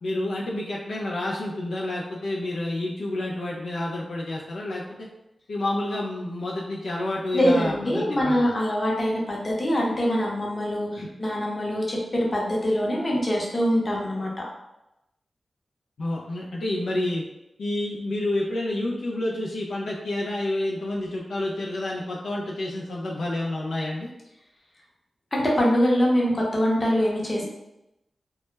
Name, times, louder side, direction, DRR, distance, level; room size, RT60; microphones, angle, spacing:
voice 1, 0.0-5.1 5.5-8.4 11.0-11.1 16.0-17.2 17.6-24.1, left 1 dB, 90° left, -3 dB, 0.4 m, -29 dB
voice 2, 7.3-14.3 25.3-27.5, equal, 40° left, -3 dB, 0.7 m, -24 dB
2.2 x 2.1 x 3.0 m, 0.89 s
cardioid pair, 60°, 0 cm